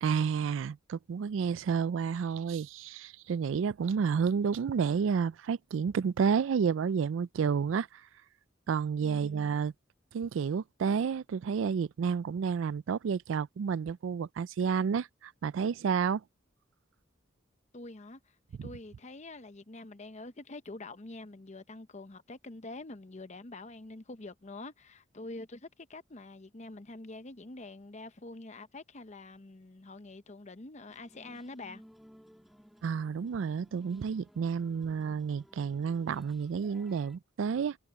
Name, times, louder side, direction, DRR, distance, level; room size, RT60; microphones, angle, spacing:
voice 1, 0.0-8.0 8.7-9.7 10.1-16.2 18.6-18.7 32.8-37.8, right 6 dB, 75° right, 0.3 m, -30 dB
voice 2, 9.0-9.4 17.7-18.2 18.6-31.8, left 2 dB, 35° left, 0.8 m, -46 dB
sound 1, 30.9-37.2, equal, ahead, 2.1 m, -58 dB
head